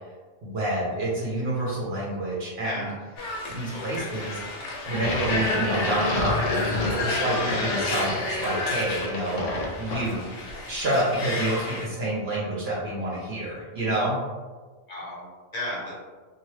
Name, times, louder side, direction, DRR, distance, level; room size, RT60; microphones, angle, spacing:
voice 1, 0.4-2.9 3.5-4.4 4.9-6.6 6.9-9.4 9.8-10.3 10.7-14.2, right 1 dB, 65° right, -6 dB, 0.9 m, -28 dB
voice 2, 2.6-2.9 3.7-4.5 14.9-15.9, left 1 dB, 40° left, -6 dB, 0.7 m, -35 dB
sound 1, 3.2-11.9, left 2 dB, 80° left, 0.9 m, -31 dB
sound 2, 4.9-10.4, left 2 dB, 65° left, 0.3 m, -31 dB
2.8 x 2.0 x 3.1 m, 1.4 s
omnidirectional pair, 1.2 m